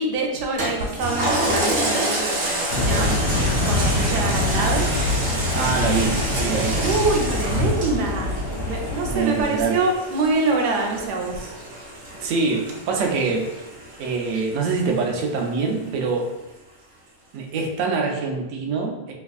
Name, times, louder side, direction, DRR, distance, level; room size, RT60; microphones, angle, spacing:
voice 1, 0.0-3.1 3.7-4.9 6.3-8.4 8.6-11.5, right 3 dB, 90° right, 1 dB, 1.2 m, -25 dB
Toilet flush, 0.6-15.4 15.9-16.0, right 1 dB, 50° right, 1.1 m, -28 dB
sound 1, 2.7-9.2, left 2 dB, 65° left, 1.3 m, -24 dB
voice 2, 5.5-6.9 9.0-9.8 12.2-13.5 14.0-16.3 17.3-19.1, right 4 dB, 65° right, 1 dB, 0.8 m, -24 dB
3.4 x 3.2 x 2.3 m, 0.99 s
omnidirectional pair, 1.7 m